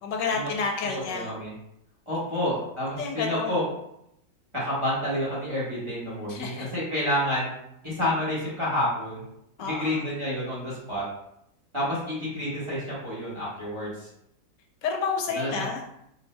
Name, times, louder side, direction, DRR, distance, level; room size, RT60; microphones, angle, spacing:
voice 1, 0.0-1.3 2.1-2.2 3.0-3.6 6.3-6.7 9.6-10.1 14.8-15.8, left 5 dB, 75° left, 2 dB, 1.2 m, -30 dB
voice 2, 1.1-1.5 2.1-3.6 4.5-7.6 7.8-9.2 9.6-11.0 11.7-14.1 15.3-15.6, left 1 dB, 20° right, -8 dB, 1.3 m, -29 dB
4.5 x 2.6 x 3.2 m, 0.77 s
omnidirectional pair, 1.9 m